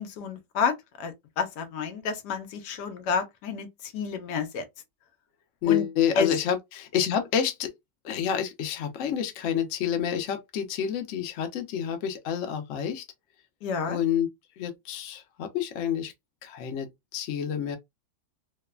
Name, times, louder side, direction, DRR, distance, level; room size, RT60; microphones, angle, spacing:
voice 1, 0.0-3.7 3.9-4.6 5.7-5.8 6.2-6.3 13.6-14.0, left 5 dB, 80° left, 1.2 m, -30 dB
voice 2, 5.6-7.7 8.0-13.0 13.8-14.3 14.6-16.1 16.4-17.8, left 9 dB, 65° left, 0.8 m, -28 dB
3.1 x 2.0 x 2.2 m
omnidirectional pair, 1.8 m